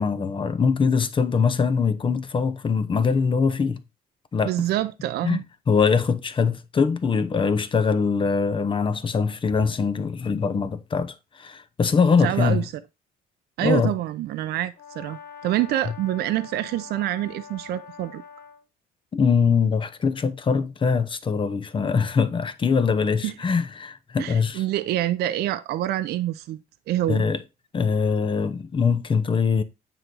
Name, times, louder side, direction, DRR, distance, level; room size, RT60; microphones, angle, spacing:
voice 1, 0.0-3.8 4.3-4.5 5.2-5.4 5.7-12.6 13.6-13.9 19.1-24.6 27.1-27.4 27.7-29.6, left 5 dB, 30° left, 0.9 m, -22 dB
voice 2, 4.4-5.4 12.2-12.7 13.6-18.2 23.2-23.3 24.2-26.6 26.9-27.2, right 14 dB, 70° right, 0.6 m, -26 dB
Brass instrument, 14.7-18.6, left 6 dB, 65° left, 1.2 m, -44 dB
9.1 x 3.9 x 4.8 m
cardioid pair, 110°, 17 cm